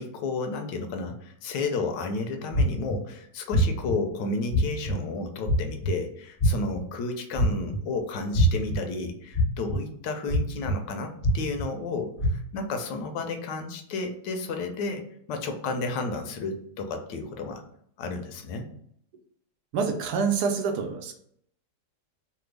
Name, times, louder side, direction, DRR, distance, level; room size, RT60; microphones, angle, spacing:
voice 1, 0.0-17.6 18.0-18.7, left 3 dB, 90° left, 6 dB, 1.2 m, -32 dB
sound 1, 2.5-3.0 3.5-3.9 4.5-4.9 5.5-5.9 6.4-6.8 7.4-7.8 8.3-8.8 9.3-9.8 10.3-10.7 11.2-11.6 12.2-12.3, left 1 dB, 25° left, 1.4 m, -23 dB
voice 2, 19.7-21.1, right 5 dB, 75° right, 4 dB, 1.1 m, -26 dB
3.3 x 2.2 x 3.2 m, 0.68 s
omnidirectional pair, 1.8 m